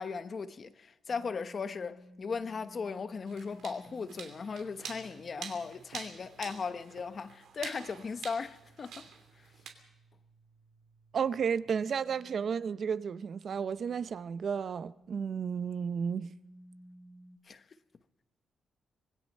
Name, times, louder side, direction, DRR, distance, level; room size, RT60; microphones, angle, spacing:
voice 1, 0.0-9.1 17.5-17.6, left 5 dB, 40° left, 1.0 m, -37 dB
sound 1, 1.1-14.1 14.7-17.4, right 1 dB, 75° right, 3.6 m, -58 dB
sound 2, 3.3-9.7, right 7 dB, 90° right, 2.8 m, -47 dB
voice 2, 11.1-16.3, right 6 dB, 55° right, 0.6 m, -32 dB
25.0 x 21.0 x 5.4 m
cardioid pair, 120°, 0 cm